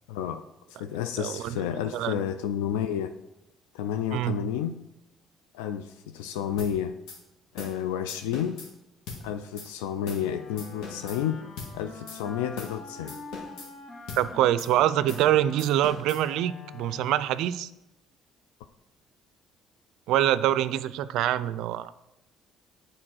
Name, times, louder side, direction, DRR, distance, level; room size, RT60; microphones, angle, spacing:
voice 1, 0.1-0.4 0.8-3.1 3.7-4.8 5.5-7.0 7.5-8.6 9.2-11.4 11.7-13.2, left 9 dB, 90° left, 9 dB, 0.3 m, -31 dB
voice 2, 1.2-1.6 1.9-2.2 4.1-4.4 14.2-17.7 20.1-21.9, right 12 dB, 75° right, 16 dB, 0.3 m, -25 dB
sound 1, 6.6-6.7 7.1-7.2 7.6-7.8 8.1-8.7 9.1-9.2 9.6-9.7 10.1-10.3 10.6-11.2 11.6-11.7 12.1-12.2 12.6-12.8 13.1-13.7 14.1-14.2 14.6-14.7 15.1-15.3 15.6-16.2, left 4 dB, 75° left, 1.9 m, -40 dB
Wind instrument woodwind instrument, 10.1-17.5, left 3 dB, 45° left, 1.4 m, -45 dB
7.6 x 4.4 x 6.2 m, 0.89 s
supercardioid pair, 65°, 0 cm